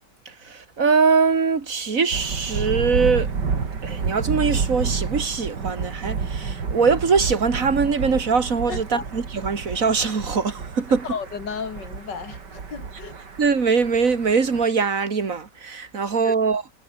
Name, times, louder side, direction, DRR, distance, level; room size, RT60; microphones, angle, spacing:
voice 1, 0.3-3.3 3.8-11.1 13.4-16.6, right 5 dB, 50° right, 2.7 m, -22 dB
Thunder, 2.1-14.6, right 5 dB, 75° right, 3.2 m, -30 dB
voice 2, 8.7-9.0 11.0-13.1 16.2-16.3, left 6 dB, 85° left, 3.0 m, -33 dB
omnidirectional pair, 1.8 m